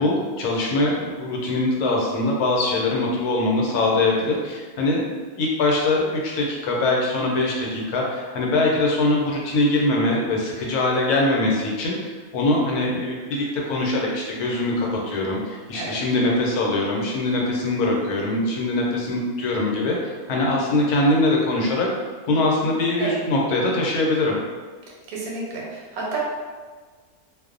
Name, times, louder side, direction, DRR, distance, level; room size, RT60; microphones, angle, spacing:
voice 1, 0.0-5.0 5.3-21.9 22.3-24.3, left 2 dB, 85° left, -2 dB, 1.1 m, -22 dB
voice 2, 15.7-16.0 23.0-23.2 25.1-26.2, right 3 dB, 80° right, -3 dB, 1.1 m, -31 dB
2.5 x 2.0 x 2.4 m, 1.4 s
omnidirectional pair, 1.6 m